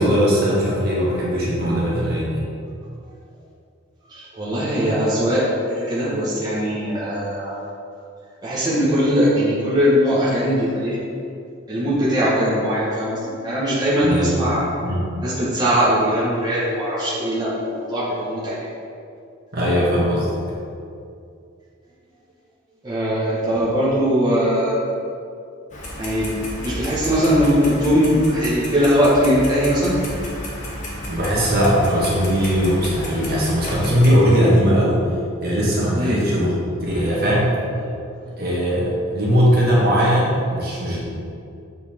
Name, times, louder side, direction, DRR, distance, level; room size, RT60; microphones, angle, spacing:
voice 1, 0.0-2.4 14.0-14.4 14.8-15.1 19.5-20.3 31.1-35.0 35.4-37.5 38.4-41.0, equal, 50° right, -6 dB, 1.7 m, -19 dB
voice 2, 4.1-7.6 8.4-11.0 11.7-14.6 15.2-18.7 22.8-24.7 26.0-26.3 26.6-30.0 35.9-36.2, equal, 20° right, -9 dB, 1.4 m, -20 dB
Clock, 25.7-34.1, left 1 dB, 40° left, 1.2 m, -32 dB
7.4 x 4.4 x 4.4 m, 2.5 s
head